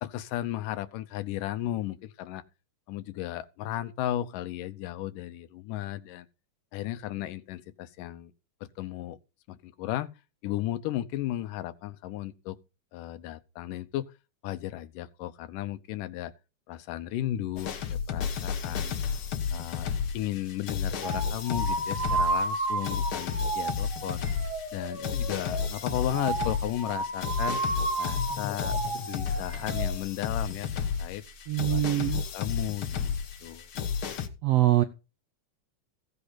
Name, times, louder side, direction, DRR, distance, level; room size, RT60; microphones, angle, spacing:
voice 1, 0.0-2.4 2.9-6.3 6.7-8.3 8.6-9.2 9.5-10.1 10.4-12.6 12.9-14.1 14.4-16.3 16.7-19.0 19.5-19.9 20.1-24.2 24.7-27.6 28.0-30.7 31.0-31.2 31.7-33.1 33.4-33.7, left 13 dB, 85° left, 2.4 m, -35 dB
sound 1, 17.6-34.3, left 7 dB, 55° left, 1.6 m, -32 dB
sound 2, 21.0-29.9, right 3 dB, 45° right, 5.1 m, -32 dB
voice 2, 31.5-32.2 34.4-34.8, right 15 dB, 75° right, 1.5 m, -23 dB
15.5 x 8.3 x 4.1 m
omnidirectional pair, 3.7 m